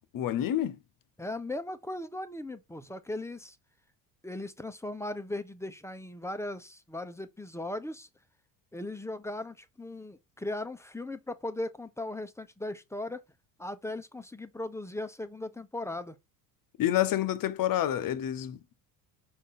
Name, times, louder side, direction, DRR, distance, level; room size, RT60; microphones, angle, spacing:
voice 1, 0.1-0.8 16.8-18.6, left 12 dB, 40° left, 0.9 m, -28 dB
voice 2, 1.2-3.6 4.2-8.1 8.7-13.2 13.6-16.2, left 1 dB, 5° left, 0.9 m, -38 dB
6.1 x 3.8 x 4.2 m
hypercardioid pair, 70°, 49 cm